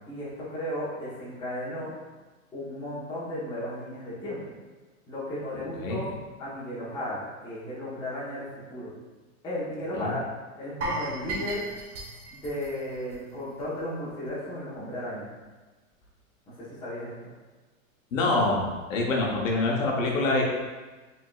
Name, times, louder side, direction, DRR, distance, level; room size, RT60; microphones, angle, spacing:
voice 1, 0.0-1.9 2.5-4.4 5.1-6.1 6.4-8.9 9.4-10.2 10.6-11.6 12.3-15.3 16.8-17.1, left 1 dB, 10° left, -10 dB, 1.1 m, -34 dB
sound 1, 10.8-13.8 14.1-14.3 14.7-14.8, right 2 dB, 55° right, 1.2 m, -35 dB
voice 2, 18.1-18.6 18.9-20.4, left 2 dB, 65° left, -1 dB, 1.1 m, -25 dB
4.7 x 3.7 x 2.4 m, 1.3 s
hypercardioid pair, 150°, 42 cm